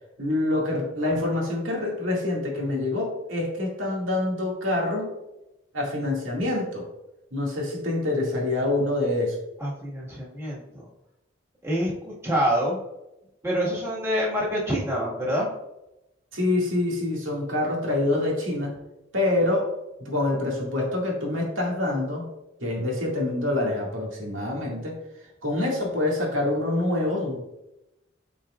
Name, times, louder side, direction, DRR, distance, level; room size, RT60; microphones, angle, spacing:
voice 1, 0.2-5.1 5.7-6.8 7.3-9.4 16.3-18.7 19.1-19.6 20.0-22.2 22.6-24.9 25.4-27.4, left 2 dB, 85° right, -2 dB, 2.1 m, -26 dB
voice 2, 9.6-10.9 11.6-12.8 13.4-15.5, equal, 15° right, -6 dB, 1.7 m, -26 dB
11.5 x 4.3 x 2.5 m, 0.92 s
head